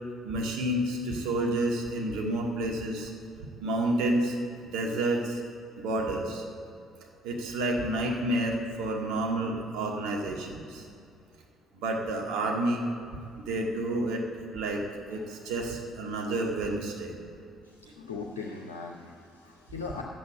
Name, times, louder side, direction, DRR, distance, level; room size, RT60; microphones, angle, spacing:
voice 1, 0.2-3.1 3.6-4.4 4.7-5.4 5.8-6.4 7.2-10.9 11.7-12.9 13.4-14.2 14.5-14.8 15.1-17.1, right 1 dB, 60° right, -1 dB, 1.8 m, -29 dB
voice 2, 17.6-20.0, left 4 dB, 75° left, 1 dB, 0.6 m, -40 dB
10.5 x 8.5 x 7.7 m, 2.5 s
figure-of-eight pair, 50°, 0 cm